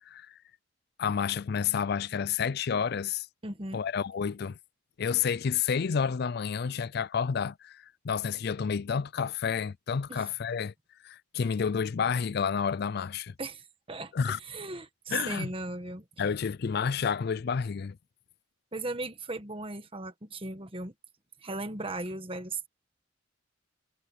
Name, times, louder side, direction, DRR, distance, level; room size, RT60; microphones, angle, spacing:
voice 1, 1.0-3.3 3.7-4.6 5.0-10.7 11.0-13.3 14.1-14.4 15.1-15.5 16.2-18.0, left 6 dB, 50° left, 0.4 m, -30 dB
voice 2, 3.4-3.8 10.1-10.2 13.4-14.1 14.4-16.0 18.7-20.9 21.4-22.7, right 2 dB, 25° right, 1.4 m, -37 dB
head